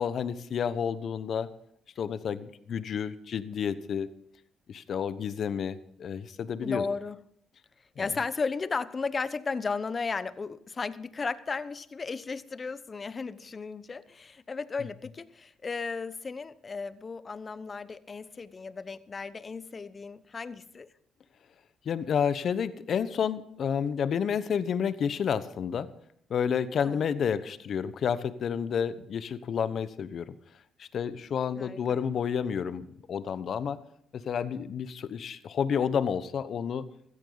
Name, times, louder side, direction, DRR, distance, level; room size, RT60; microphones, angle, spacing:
voice 1, 0.0-1.5 2.0-4.1 4.7-6.8 8.0-8.1 21.8-25.9 26.3-30.3 30.8-33.8 34.1-36.9, left 7 dB, 60° left, 14 dB, 1.1 m, -30 dB
voice 2, 6.6-7.2 8.0-20.9 26.7-27.0 31.5-32.0, left 4 dB, 35° left, 15 dB, 1.0 m, -35 dB
16.0 x 14.0 x 4.0 m, 0.70 s
supercardioid pair, 65°, 0 cm